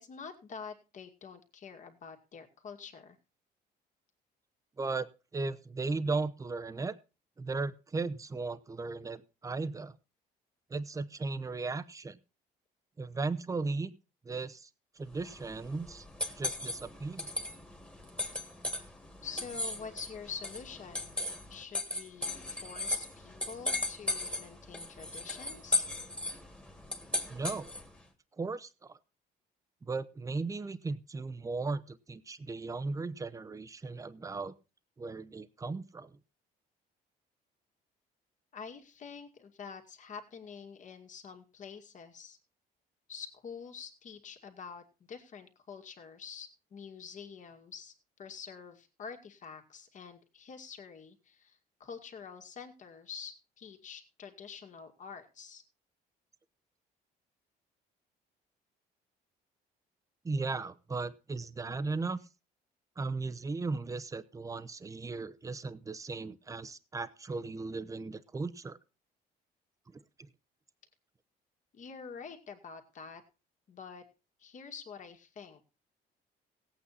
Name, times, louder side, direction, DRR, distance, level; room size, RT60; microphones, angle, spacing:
voice 1, 0.0-3.2 16.3-16.4 18.4-18.5 19.2-21.2 21.5-25.9 38.5-42.4 43.1-47.9 48.2-55.6 71.7-73.2 73.7-74.0 74.4-75.7, left 6 dB, 45° left, 5 dB, 2.3 m, -47 dB
voice 2, 4.8-7.0 7.4-9.9 10.7-12.2 13.0-13.9 14.2-14.7 15.0-16.0 16.4-17.3 27.3-27.7 28.4-29.0 29.8-34.5 35.0-36.1 60.2-62.2 63.0-68.8 70.2-70.3, right 3 dB, 20° right, 14 dB, 0.8 m, -36 dB
sound 1, 15.1-28.0, left 2 dB, 5° left, 1.9 m, -37 dB
17.0 x 8.7 x 4.2 m, 0.32 s
cardioid pair, 110°, 17 cm